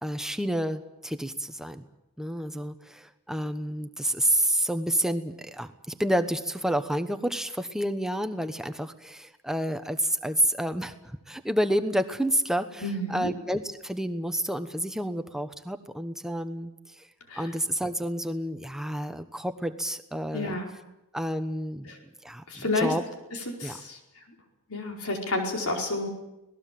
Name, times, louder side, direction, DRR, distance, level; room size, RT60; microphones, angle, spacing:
voice 1, 0.0-1.9 2.2-10.9 11.3-16.7 17.0-17.1 17.4-20.6 21.1-21.9 22.2-23.0 23.6-23.8, equal, ahead, 9 dB, 1.1 m, -29 dB
voice 2, 12.8-13.3 17.3-17.4 20.3-20.7 21.9-22.0 22.5-22.9 23.5-24.0 24.7-26.1, left 2 dB, 80° left, 1 dB, 4.8 m, -30 dB
26.0 x 19.0 x 7.7 m, 0.96 s
head